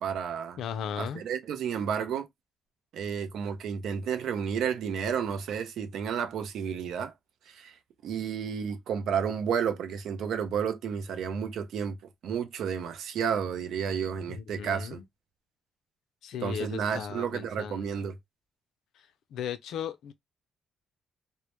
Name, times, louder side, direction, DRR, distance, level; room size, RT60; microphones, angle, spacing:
voice 1, 0.0-0.6 1.0-2.3 2.9-7.1 7.5-7.7 8.0-12.0 12.2-15.0 16.4-18.1, right 7 dB, 75° right, 0.5 m, -31 dB
voice 2, 0.6-1.2 14.3-15.0 16.2-18.1 19.3-20.1, left 8 dB, 80° left, 0.4 m, -37 dB
2.1 x 2.0 x 2.9 m
cardioid pair, 90°, 0 cm